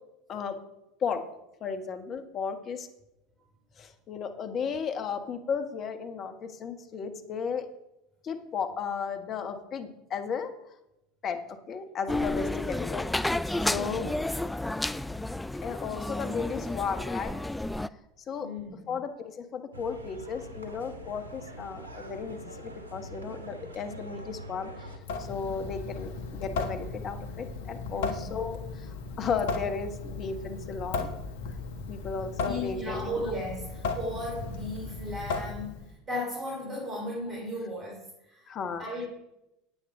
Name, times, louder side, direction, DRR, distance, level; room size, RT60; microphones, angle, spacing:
voice 1, 1.6-2.9 3.8-7.6 8.2-10.5 11.2-11.4 11.7-13.0 13.6-14.1 15.5-17.3 18.3-18.5 18.9-24.7 25.3-31.1 31.9-33.2 38.5-38.8, left 6 dB, 35° left, 7 dB, 1.3 m, -34 dB
sound 1, 12.1-17.9, left 2 dB, 5° left, 0.3 m, -31 dB
voice 2, 13.6-14.1 18.4-18.9 27.9-28.4 32.4-38.5 38.8-39.1, left 1 dB, 25° right, -2 dB, 3.2 m, -36 dB
sound 2, 19.7-25.0, equal, 80° right, 1.1 m, -44 dB
Water tap faucet / Sink (filling or washing) / Drip, 25.0-35.9, left 4 dB, 65° left, 1.2 m, -36 dB
9.9 x 8.6 x 4.9 m, 0.90 s
figure-of-eight pair, 75°, 0 cm